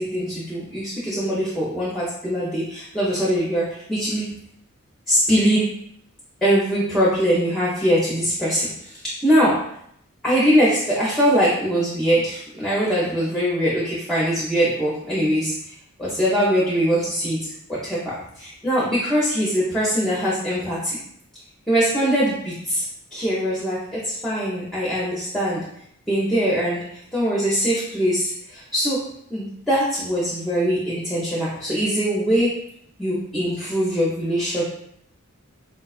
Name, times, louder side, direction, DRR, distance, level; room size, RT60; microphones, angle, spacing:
voice 1, 0.0-4.3 5.1-5.7 6.4-9.6 10.2-15.7 16.0-21.0 21.7-22.8 23.1-25.6 26.1-26.8 27.1-29.0 29.3-32.6 33.0-34.6, equal, ahead, -8 dB, 0.6 m, -22 dB
4.2 x 2.2 x 2.3 m, 0.70 s
head